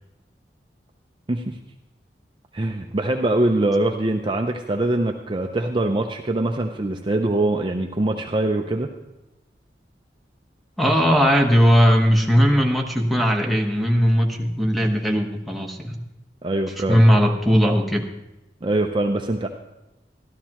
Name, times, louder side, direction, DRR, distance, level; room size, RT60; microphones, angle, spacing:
voice 1, 2.5-8.9 16.4-17.1 18.6-19.5, right 2 dB, 30° right, 3 dB, 0.6 m, -23 dB
voice 2, 10.8-16.0 16.8-18.1, equal, ahead, 0 dB, 1.1 m, -18 dB
13.0 x 13.0 x 3.0 m, 0.96 s
head